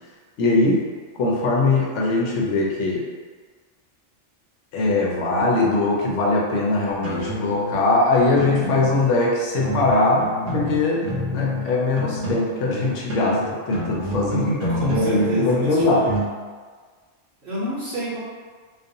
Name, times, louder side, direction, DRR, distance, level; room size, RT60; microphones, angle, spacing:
voice 1, 0.4-0.8 1.2-3.0 4.7-11.0 11.3-14.5 15.0-16.1, left 2 dB, 85° left, -2 dB, 0.9 m, -21 dB
sound 1, 6.9-8.0 8.3-9.2 9.6-12.6 12.8-16.3, equal, 75° right, 1.1 m, -28 dB
voice 2, 14.3-16.2 17.4-18.2, equal, 55° right, -9 dB, 0.8 m, -28 dB
2.4 x 2.2 x 2.6 m, 1.5 s
omnidirectional pair, 1.2 m